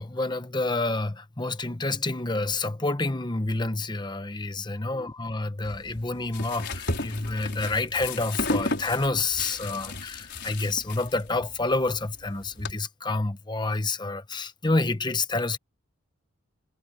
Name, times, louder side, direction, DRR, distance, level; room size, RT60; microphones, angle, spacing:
voice 1, 0.0-15.6, left 2 dB, 20° left, 1.0 m, -28 dB
sound 1, 5.6-12.7, left 2 dB, 55° left, 5.5 m, -34 dB
head